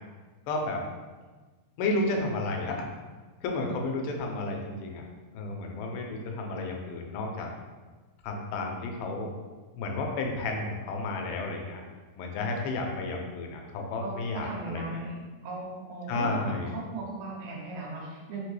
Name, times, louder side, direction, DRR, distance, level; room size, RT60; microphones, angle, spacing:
voice 1, 0.5-0.8 1.8-2.9 3.4-5.0 5.3-7.5 8.2-9.3 9.8-11.8 12.2-15.0 16.1-16.8, left 2 dB, 90° left, 1 dB, 2.5 m, -32 dB
voice 2, 14.0-15.2 15.4-18.4, right 3 dB, 80° right, -3 dB, 2.5 m, -37 dB
5.9 x 2.2 x 3.1 m, 1.3 s
omnidirectional pair, 4.2 m